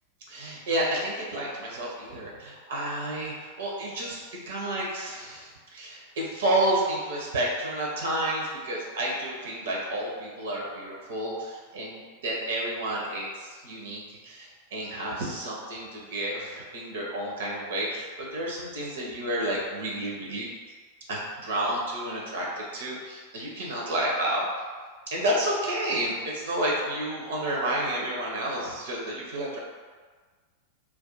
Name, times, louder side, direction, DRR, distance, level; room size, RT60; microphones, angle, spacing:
voice 1, 0.3-20.5 21.1-22.5 22.7-24.5 25.1-29.6, right 1 dB, 60° right, -2 dB, 0.6 m, -30 dB
2.4 x 2.3 x 3.8 m, 1.5 s
figure-of-eight pair, 90°, 0 cm